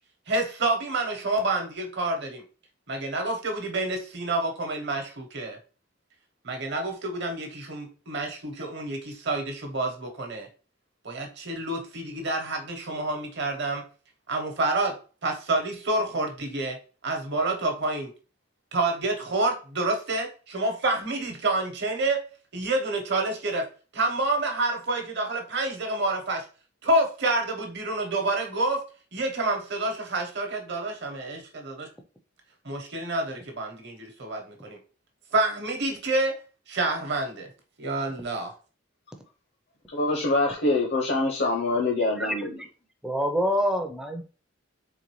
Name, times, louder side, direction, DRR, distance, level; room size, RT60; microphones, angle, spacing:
voice 1, 0.3-2.4 2.9-5.6 6.4-10.5 11.0-13.8 14.3-14.9 15.2-16.8 17.0-18.1 18.7-22.2 22.5-23.7 23.9-26.4 26.8-28.8 29.1-31.7 32.6-34.8 35.3-36.4 36.7-37.5 37.8-38.5, right 2 dB, 60° right, 1.0 m, -28 dB
voice 2, 39.9-42.6, left 2 dB, 55° left, 0.7 m, -25 dB
voice 3, 43.0-44.2, equal, 5° right, 0.5 m, -26 dB
3.9 x 3.6 x 3.1 m
head